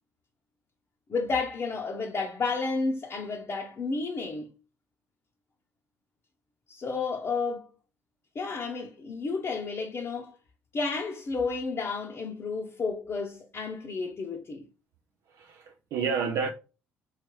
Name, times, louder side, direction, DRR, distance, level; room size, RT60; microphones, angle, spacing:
voice 1, 1.1-4.5 6.7-7.7 8.3-10.3 10.7-14.6, left 4 dB, 40° left, 0.7 m, -31 dB
voice 2, 15.3-16.5, right 5 dB, 65° right, 0.4 m, -30 dB
3.2 x 3.2 x 3.0 m
hypercardioid pair, 55°, 6 cm